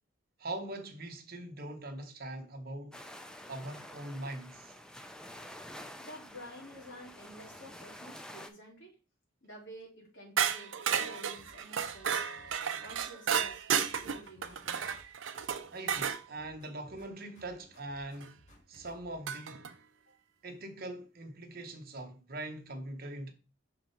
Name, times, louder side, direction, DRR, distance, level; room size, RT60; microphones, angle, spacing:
voice 1, 0.4-3.0 3.5-4.7 15.7-18.4 18.7-19.7 20.4-23.3, right 1 dB, 50° right, 1.1 m, -42 dB
sound 1, 2.9-8.5, left 1 dB, 5° left, 0.5 m, -49 dB
voice 2, 6.0-9.0 9.4-12.3 12.8-14.9 20.1-20.2, equal, 75° left, 3.0 m, -51 dB
clattering metal objects, 10.4-16.2 18.2-18.3 19.3-19.7, right 8 dB, 85° right, 0.6 m, -33 dB
sound 2, 11.4-13.1 13.4-15.1 15.4-17.1 17.4-19.2, equal, 40° left, 1.9 m, -60 dB
5.9 x 3.7 x 4.5 m
head